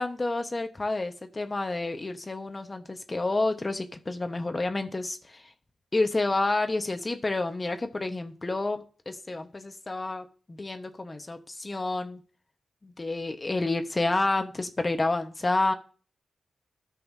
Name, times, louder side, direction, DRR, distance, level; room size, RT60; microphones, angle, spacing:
voice 1, 0.0-5.5 5.9-12.2 12.8-15.7, left 2 dB, 30° left, 7 dB, 1.3 m, -29 dB
13.0 x 5.5 x 2.8 m, 0.39 s
cardioid pair, 60°, 0 cm